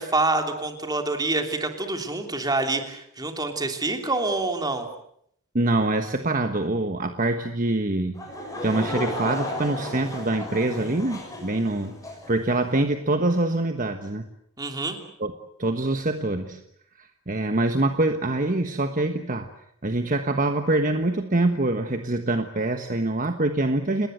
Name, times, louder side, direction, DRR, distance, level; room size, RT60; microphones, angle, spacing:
voice 1, 0.0-4.9 14.6-15.0, right 2 dB, 20° right, 5 dB, 3.2 m, -26 dB
voice 2, 5.5-8.2 8.6-12.0 12.3-14.3 15.2-15.3 15.6-16.6 17.0-19.5 19.8-24.1, right 2 dB, 40° right, 7 dB, 1.3 m, -25 dB
Laughter / Crowd, 8.1-12.4, left 1 dB, 15° left, 6.8 m, -33 dB
30.0 x 19.5 x 8.0 m, 0.71 s
head